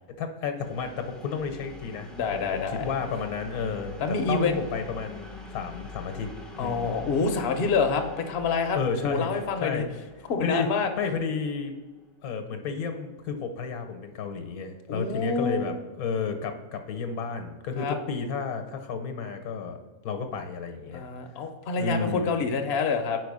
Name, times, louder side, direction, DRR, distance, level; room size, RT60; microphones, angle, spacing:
voice 1, 0.1-6.3 6.5-6.9 8.7-9.3 9.6-9.9 10.4-10.7 11.0-11.7 12.2-19.8 20.0-21.0 21.8-22.4, left 5 dB, 75° left, 6 dB, 1.2 m, -32 dB
sound 1, 0.6-12.2, left 3 dB, ahead, 0.4 m, -45 dB
voice 2, 2.1-2.9 4.0-4.6 6.6-9.8 10.3-10.9 14.9-15.7 17.8-18.0 20.9-23.2, left 4 dB, 50° left, 4 dB, 0.8 m, -27 dB
4.9 x 4.6 x 4.7 m, 1.3 s
omnidirectional pair, 1.5 m